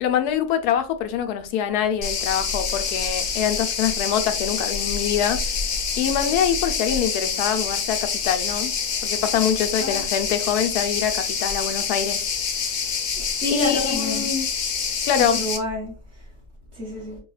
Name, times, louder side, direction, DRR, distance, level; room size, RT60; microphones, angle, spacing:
voice 1, 0.0-5.4 6.0-8.0 8.2-8.7 9.0-12.2 13.5-14.5 15.1-15.4, left 9 dB, 80° left, 1.1 m, -24 dB
sound 1, 2.0-15.6, left 6 dB, 60° left, 0.8 m, -26 dB
voice 2, 13.1-14.3 15.2-15.9 16.8-17.2, left 1 dB, 50° right, 1.3 m, -29 dB
4.6 x 2.2 x 3.1 m
omnidirectional pair, 1.7 m